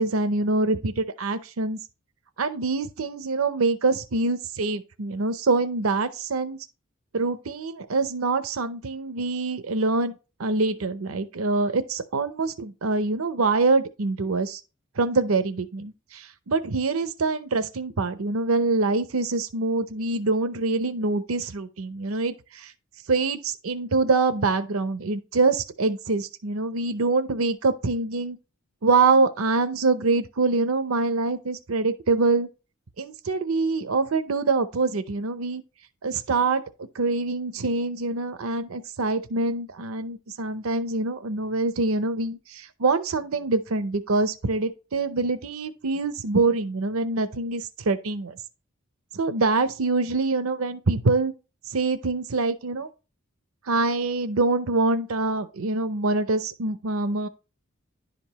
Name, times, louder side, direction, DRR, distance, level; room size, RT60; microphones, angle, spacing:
voice 1, 0.0-1.8 2.4-6.6 7.1-10.1 10.4-14.6 15.0-22.7 23.1-28.4 28.8-32.5 33.0-35.6 36.0-36.6 36.9-48.4 49.1-51.3 51.7-52.9 53.7-57.3, right 3 dB, 85° right, 0.7 m, -25 dB
10.5 x 5.2 x 2.9 m
head